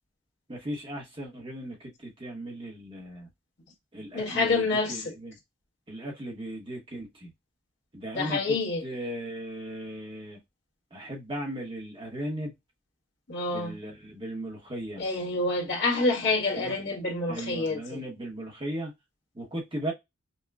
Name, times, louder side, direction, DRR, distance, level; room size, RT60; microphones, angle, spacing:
voice 1, 0.5-3.3 3.9-5.3 5.9-7.3 7.9-8.6 8.8-10.4 10.9-12.5 13.5-15.0 16.5-16.7 17.3-18.9 19.3-19.9, right 1 dB, 25° right, 1.0 m, -37 dB
voice 2, 4.1-5.1 8.1-8.8 13.3-13.8 15.0-18.0, left 3 dB, 60° left, 1.5 m, -27 dB
5.4 x 2.2 x 2.4 m
head